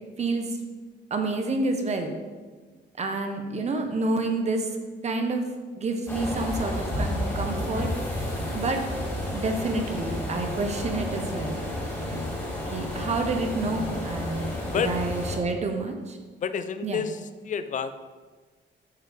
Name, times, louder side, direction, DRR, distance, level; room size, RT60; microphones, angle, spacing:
voice 1, 0.2-0.6 1.1-2.1 3.0-4.7 5.0-5.4 5.8-7.9 8.5-8.8 9.3-11.6 12.1-12.3 12.7-16.2 16.8-17.0, right 3 dB, 35° right, 5 dB, 0.7 m, -28 dB
sound 1, 6.1-15.4, left 1 dB, 15° left, 1.6 m, -31 dB
voice 2, 16.4-17.2 17.4-17.9, left 7 dB, 40° left, 12 dB, 0.4 m, -28 dB
8.1 x 6.5 x 3.4 m, 1.4 s
wide cardioid pair, 175°, 20 cm